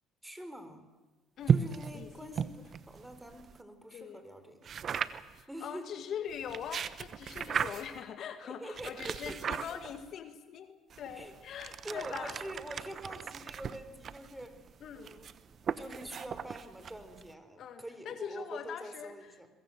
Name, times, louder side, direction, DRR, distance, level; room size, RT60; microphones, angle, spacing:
voice 1, 0.2-0.9 1.5-4.8 5.5-5.9 8.4-9.8 11.1-11.3 11.6-14.6 14.9-19.5, equal, 10° right, 10 dB, 4.0 m, -46 dB
sound 1, 1.4-3.6 4.6-5.4 6.3-8.0 8.8-10.1 10.9-17.3, right 7 dB, 50° right, 1.0 m, -36 dB
voice 2, 1.9-2.5 3.9-4.2 5.3-12.4 14.8-15.1 17.6-19.5, left 8 dB, 60° left, 8 dB, 1.9 m, -42 dB
23.0 x 22.0 x 7.8 m, 1.2 s
hypercardioid pair, 65°, 0 cm